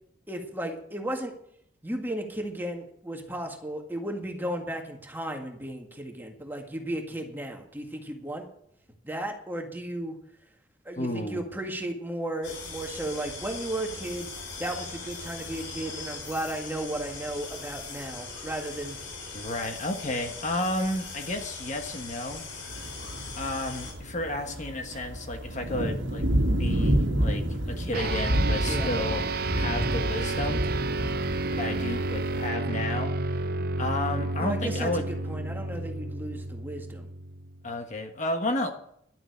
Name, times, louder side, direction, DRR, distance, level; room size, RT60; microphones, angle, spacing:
voice 1, 0.3-1.3 1.8-8.4 9.0-10.2 10.9-14.3 14.6-19.0 28.7-28.9 34.4-37.1, right 1 dB, 10° right, 2 dB, 1.9 m, -34 dB
voice 2, 10.9-11.4 19.3-22.5 23.3-26.3 26.6-30.6 31.6-33.4 33.8-35.1 37.6-38.7, left 1 dB, 40° left, 5 dB, 1.4 m, -32 dB
sound 1, 12.4-23.9, left 4 dB, 85° left, 4.4 m, -40 dB
sound 2, 22.7-32.5, equal, 75° right, 1.6 m, -29 dB
sound 3, 27.9-37.6, right 2 dB, 50° right, 0.7 m, -31 dB
12.0 x 7.8 x 8.1 m, 0.70 s
head